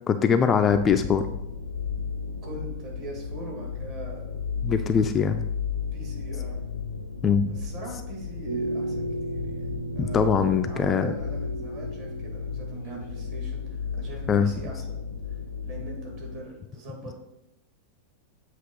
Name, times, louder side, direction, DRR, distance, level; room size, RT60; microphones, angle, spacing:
voice 1, 0.1-1.3 4.6-5.4 7.2-7.4 10.0-11.1 14.3-14.5, left 6 dB, 25° left, 7 dB, 0.4 m, -22 dB
sound 1, 0.7-16.4, left 5 dB, 85° left, 0.6 m, -34 dB
voice 2, 2.4-4.4 5.9-6.7 7.4-10.3 10.7-15.1 15.6-17.1, right 1 dB, 45° right, -1 dB, 2.2 m, -42 dB
sound 2, 8.5-13.4, right 1 dB, 80° right, 1.7 m, -34 dB
7.7 x 3.0 x 5.4 m, 0.85 s
figure-of-eight pair, 90°, 0 cm